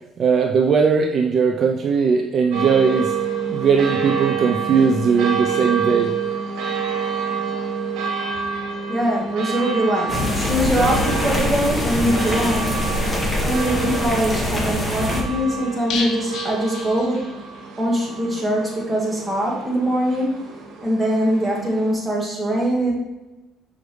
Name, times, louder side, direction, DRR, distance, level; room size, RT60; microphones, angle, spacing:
voice 1, 0.2-3.1 3.5-6.1, right 5 dB, 45° right, 3 dB, 0.6 m, -19 dB
sound 1, 2.5-21.9, right 6 dB, 80° right, 1.6 m, -28 dB
voice 2, 8.9-12.7 13.4-17.2 17.8-20.3 20.8-22.9, equal, 10° right, -3 dB, 2.0 m, -22 dB
sound 2, 10.1-15.2, left 1 dB, 10° left, 1.5 m, -23 dB
sound 3, 15.9-17.7 18.0-18.1 18.4-18.5, left 4 dB, 60° left, 0.9 m, -32 dB
6.4 x 5.2 x 3.3 m, 1.0 s
cardioid pair, 110°, 0 cm